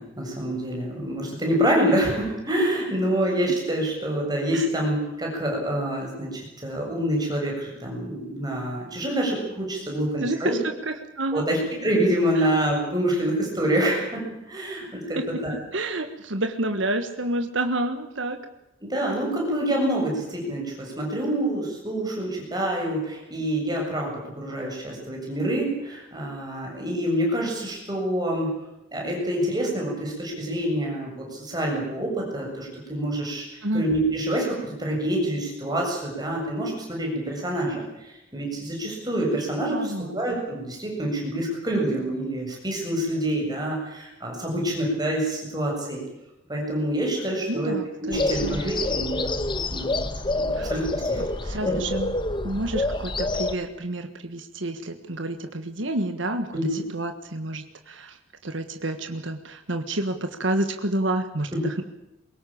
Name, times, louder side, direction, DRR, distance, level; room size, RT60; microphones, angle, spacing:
voice 1, 0.0-10.5 11.3-14.2 14.5-15.5 18.8-28.5 28.9-46.0 46.5-47.7 48.0-49.5 49.7-51.8 56.5-56.8 61.5-61.6, right 1 dB, 20° right, -1 dB, 7.5 m, -27 dB
voice 2, 10.2-10.6 10.9-11.5 12.4-12.5 15.1-15.2 15.7-18.4 33.6-33.8 39.7-40.2 47.5-48.6 50.5-50.7 51.2-52.1 52.4-58.2 58.4-61.8, right 1 dB, 70° right, 6 dB, 1.5 m, -29 dB
sound 1, 48.1-53.6, left 2 dB, 25° left, 1.2 m, -27 dB
22.5 x 18.0 x 8.7 m, 0.91 s
head